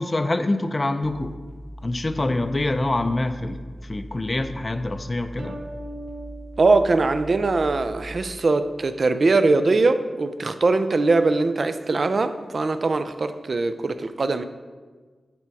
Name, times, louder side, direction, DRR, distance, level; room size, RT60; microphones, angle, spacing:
voice 1, 0.0-1.3 1.8-5.5, left 2 dB, 30° left, 9 dB, 0.4 m, -25 dB
sound 1, 1.0-8.4, equal, ahead, 0.9 m, -40 dB
sound 2, 5.4-8.0, right 1 dB, 65° right, 0.7 m, -41 dB
voice 2, 6.6-14.4, right 3 dB, 50° right, 10 dB, 0.3 m, -21 dB
8.4 x 3.5 x 4.5 m, 1.4 s
wide cardioid pair, 105°, 0 cm